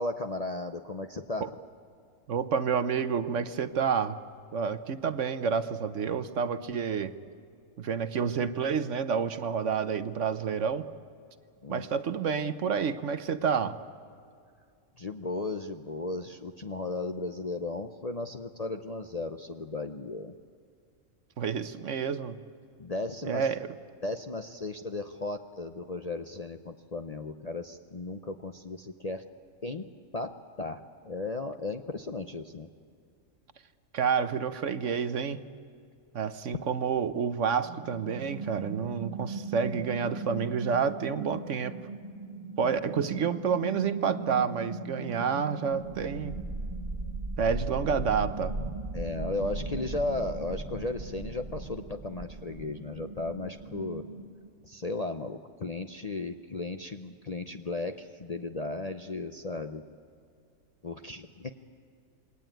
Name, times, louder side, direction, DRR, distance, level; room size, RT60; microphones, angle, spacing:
voice 1, 0.0-1.5 11.6-11.9 15.0-20.3 22.8-23.5 24.0-29.2 29.6-29.9 30.1-32.7 48.9-54.0 54.6-59.8 60.8-61.5, left 2 dB, 35° left, 5 dB, 0.6 m, -35 dB
voice 2, 2.3-4.2 4.5-7.1 7.8-10.9 11.7-13.8 21.4-22.4 23.2-23.7 33.9-35.4 36.1-41.8 42.6-46.3 47.4-48.6, right 6 dB, 60° right, 11 dB, 1.1 m, -29 dB
sound 1, 37.6-54.3, right 3 dB, 35° right, 2.1 m, -38 dB
27.5 x 21.5 x 9.1 m, 2.3 s
omnidirectional pair, 1.5 m